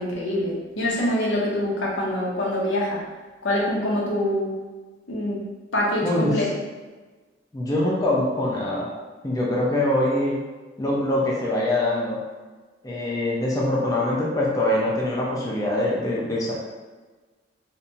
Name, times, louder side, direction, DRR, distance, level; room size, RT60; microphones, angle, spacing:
voice 1, 0.0-3.0 3.4-4.5 5.1-5.4 5.7-6.5, left 1 dB, 80° left, -4 dB, 0.7 m, -25 dB
voice 2, 6.0-6.4 7.5-8.9 9.2-10.4 10.8-12.2 12.8-16.5, left 1 dB, 20° left, -4 dB, 0.4 m, -23 dB
2.8 x 2.2 x 2.6 m, 1.3 s
head